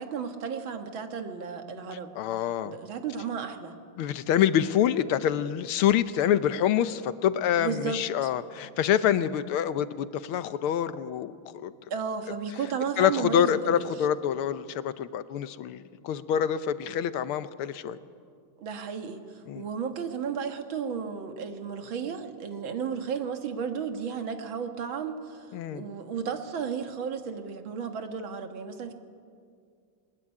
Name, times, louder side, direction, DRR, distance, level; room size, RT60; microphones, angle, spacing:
voice 1, 0.0-2.1 2.4-3.7 7.6-8.3 11.9-13.9 18.6-28.9, right 6 dB, 70° right, 6 dB, 2.3 m, -34 dB
voice 2, 2.2-2.8 4.0-11.7 13.0-18.0 19.5-19.6 25.5-25.9, left 10 dB, 85° left, 13 dB, 1.7 m, -26 dB
22.0 x 20.0 x 9.8 m, 2.3 s
omnidirectional pair, 2.3 m